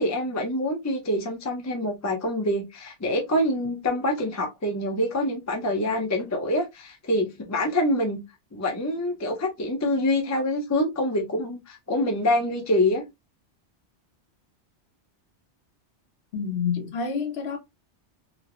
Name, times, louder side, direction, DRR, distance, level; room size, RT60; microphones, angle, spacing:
voice 1, 0.0-8.2 8.5-13.0, left 1 dB, 25° left, 0.4 m, -26 dB
voice 2, 16.3-17.6, left 6 dB, 70° left, 1.0 m, -28 dB
3.1 x 2.0 x 2.4 m
omnidirectional pair, 1.1 m